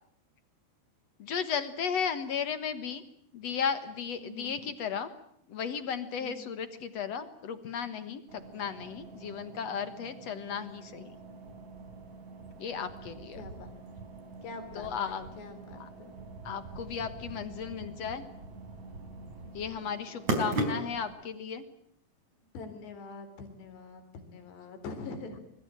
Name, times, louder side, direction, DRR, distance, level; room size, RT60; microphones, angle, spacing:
voice 1, 1.2-3.0 3.3-5.1 5.5-11.2 12.6-13.4 14.7-15.3 15.7-15.9 16.4-18.2 19.5-21.6, left 7 dB, 60° left, 12 dB, 1.7 m, -35 dB
voice 2, 4.2-4.5 6.2-6.5 13.4-13.7 14.4-14.9 15.4-16.2 22.5-25.4, left 3 dB, 85° left, 8 dB, 5.7 m, -44 dB
sound 1, 8.3-21.1, right 2 dB, 45° right, 5.3 m, -40 dB
25.5 x 21.0 x 8.9 m, 0.70 s
omnidirectional pair, 4.8 m